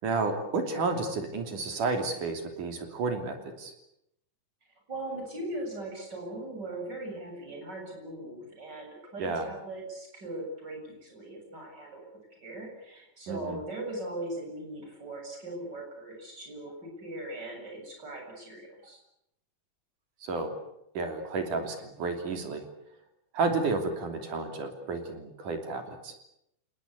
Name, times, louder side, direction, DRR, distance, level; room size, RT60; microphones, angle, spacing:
voice 1, 0.0-3.7 9.2-9.5 13.3-13.6 20.2-20.5 20.9-22.6 23.3-26.1, right 3 dB, 70° right, 5 dB, 4.6 m, -31 dB
voice 2, 4.9-12.0 12.3-19.0, right 1 dB, 30° right, 2 dB, 8.4 m, -39 dB
29.0 x 19.0 x 8.4 m, 0.80 s
omnidirectional pair, 3.7 m